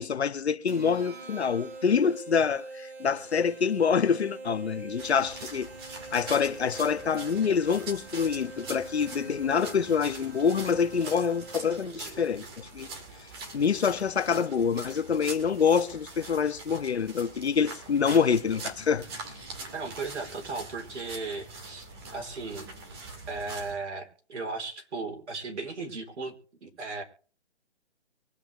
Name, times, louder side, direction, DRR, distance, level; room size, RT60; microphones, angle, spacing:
voice 1, 0.0-5.7 6.1-12.9 13.5-19.0, left 6 dB, 65° left, 1.2 m, -26 dB
sound 1, 0.7-12.1, right 3 dB, 65° right, 5.6 m, -44 dB
sound 2, 5.0-23.8, right 3 dB, 20° right, 2.0 m, -43 dB
voice 2, 11.8-12.4 19.7-22.7 23.3-26.3 26.6-27.0, right 3 dB, 80° right, 3.9 m, -36 dB
24.0 x 8.7 x 3.3 m
hypercardioid pair, 165°, 34 cm